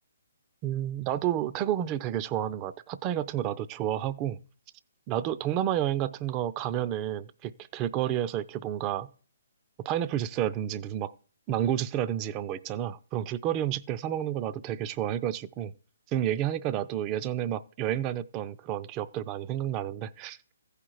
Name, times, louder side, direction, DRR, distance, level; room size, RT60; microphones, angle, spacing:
voice 1, 0.6-4.4 5.1-9.1 9.8-11.1 11.5-15.7 16.1-20.4, right 11 dB, 25° right, 0.5 m, -30 dB
15.0 x 5.1 x 4.6 m
figure-of-eight pair, 135°, 0 cm